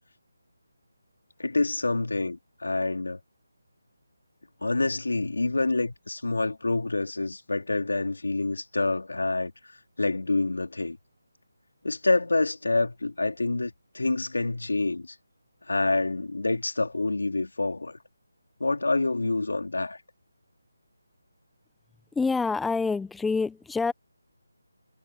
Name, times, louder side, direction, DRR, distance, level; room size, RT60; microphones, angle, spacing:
voice 1, 1.4-3.2 4.6-9.5 10.0-11.0 11.8-15.2 15.7-18.0 18.6-20.0, left 2 dB, 85° left, 3.8 m, -27 dB
voice 2, 22.1-23.9, left 4 dB, 5° left, 0.9 m, -26 dB
figure-of-eight pair, 165°, 0 cm